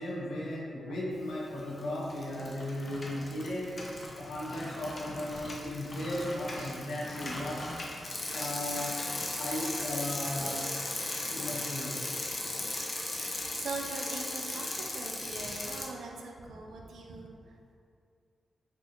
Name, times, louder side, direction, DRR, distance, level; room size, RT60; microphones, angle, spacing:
voice 1, 0.0-3.8 4.2-7.7 8.3-9.0 9.4-10.7 11.3-12.0, left 1 dB, 85° left, -5 dB, 0.8 m, -36 dB
Bicycle, 1.4-1.8 2.1-15.9, left 2 dB, 40° left, 0.5 m, -37 dB
voice 2, 13.1-17.6, right 3 dB, 85° right, 1 dB, 0.4 m, -42 dB
3.7 x 2.4 x 2.9 m, 2.3 s
cardioid pair, 70°, 0 cm